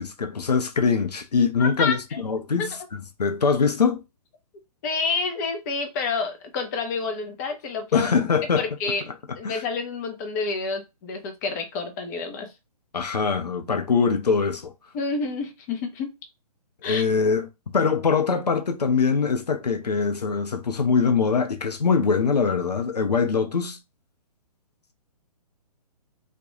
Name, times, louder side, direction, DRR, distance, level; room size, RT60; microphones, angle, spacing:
voice 1, 0.0-4.0 7.9-8.7 9.4-9.6 12.9-14.7 16.8-23.8, left 5 dB, 85° left, 0.6 m, -23 dB
voice 2, 1.6-2.2 2.6-2.7 4.8-8.1 8.6-9.0 9.4-12.5 14.9-16.1 16.8-17.0, left 4 dB, 25° left, 0.5 m, -29 dB
2.3 x 2.2 x 2.9 m
figure-of-eight pair, 130°, 20 cm